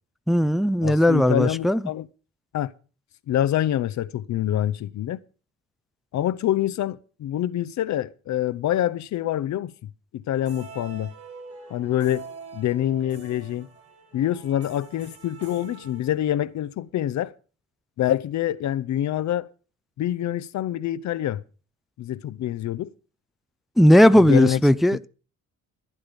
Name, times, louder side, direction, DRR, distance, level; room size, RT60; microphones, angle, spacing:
voice 1, 0.3-1.8 23.8-25.1, equal, ahead, 0.5 m, -17 dB
voice 2, 0.8-2.1 2.5-2.7 3.3-5.2 6.1-11.1 11.7-12.2 12.5-13.7 14.1-17.3 18.0-19.5 20.0-21.4 22.0-22.9 24.1-24.6, left 12 dB, 70° left, 0.8 m, -26 dB
sound 1, 10.3-16.6, right 4 dB, 50° right, 5.9 m, -45 dB
15.0 x 9.9 x 5.3 m
cardioid pair, 90°, 30 cm